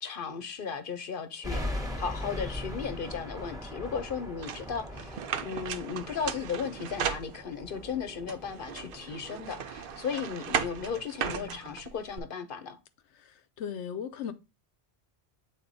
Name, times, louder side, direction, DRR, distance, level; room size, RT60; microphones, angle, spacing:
voice 1, 0.0-12.8, left 6 dB, 55° left, 0.9 m, -36 dB
sound 1, 1.4-10.0, left 1 dB, 5° right, 1.0 m, -40 dB
sound 2, 4.4-7.8 8.3-12.2, right 8 dB, 60° right, 0.7 m, -36 dB
voice 2, 11.2-11.7 13.2-14.3, left 8 dB, 85° left, 1.0 m, -39 dB
7.8 x 3.9 x 4.0 m
omnidirectional pair, 1.1 m